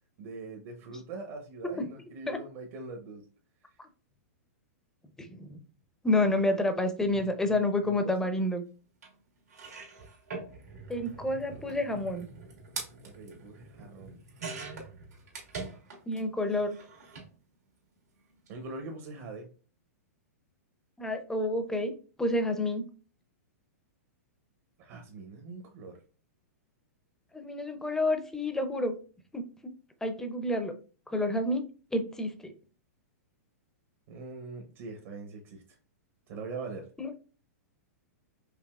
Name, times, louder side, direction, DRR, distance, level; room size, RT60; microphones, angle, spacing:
voice 1, 0.2-3.2 6.1-6.2 7.1-8.3 13.0-14.2 18.5-19.5 24.8-26.0 34.1-35.8 36.3-36.9, right 3 dB, 50° right, 3 dB, 0.8 m, -43 dB
voice 2, 5.2-5.6 6.0-8.6 10.9-12.3 16.1-16.7 21.0-21.9 22.2-22.9 27.3-28.9 29.3-29.7 30.0-30.7 31.1-31.6 31.9-32.5 37.0-37.1, left 1 dB, 5° left, 7 dB, 0.5 m, -29 dB
sound 1, 9.0-9.1 9.5-16.2 16.5-17.3 18.3-18.5 18.7-18.8, right 4 dB, 90° right, 1.6 m, -43 dB
4.9 x 2.7 x 2.3 m, 0.37 s
hypercardioid pair, 130°, 9 cm